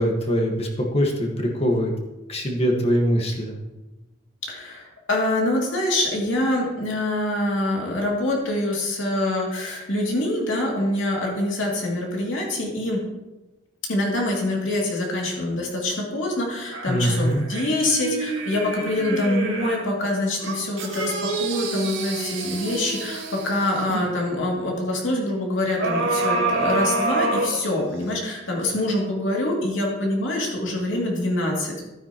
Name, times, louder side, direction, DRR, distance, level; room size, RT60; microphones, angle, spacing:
voice 1, 0.0-1.9 2.3-3.6 16.9-17.4, equal, 30° left, 1 dB, 1.6 m, -22 dB
voice 2, 4.5-13.0 13.9-31.7, left 1 dB, 75° left, -1 dB, 2.7 m, -25 dB
sound 1, 16.7-19.9 20.4-24.1 25.8-28.1 28.6-28.7, right 2 dB, 75° right, 2.1 m, -28 dB
12.5 x 9.3 x 3.0 m, 1.1 s
head